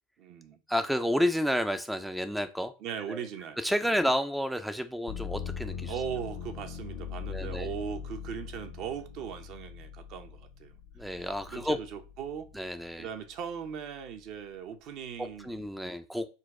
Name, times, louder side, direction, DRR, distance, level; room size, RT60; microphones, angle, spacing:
voice 1, 0.2-0.6 2.8-4.0 5.9-10.8 11.5-12.5 13.0-15.9, right 8 dB, 50° right, 0.7 m, -39 dB
voice 2, 0.7-2.7 3.1-3.3 3.6-5.9 7.3-7.7 11.0-11.8 12.5-13.1 15.2-16.3, equal, ahead, 0.4 m, -30 dB
sound 1, 5.1-12.9 13.4-14.2, left 7 dB, 60° left, 0.6 m, -41 dB
4.1 x 2.3 x 4.7 m
hypercardioid pair, 95°, 0 cm